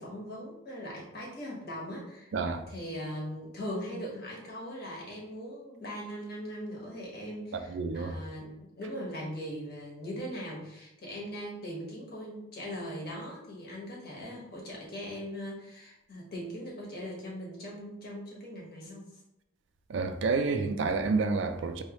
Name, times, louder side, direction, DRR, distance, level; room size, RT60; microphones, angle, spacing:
voice 1, 0.0-2.3 2.7-19.1, equal, 50° left, 1.4 m, -40 dB
voice 2, 2.3-2.6 7.7-8.1 19.9-21.8, right 4 dB, 70° right, 0.4 m, -29 dB
4.4 x 3.1 x 3.0 m
head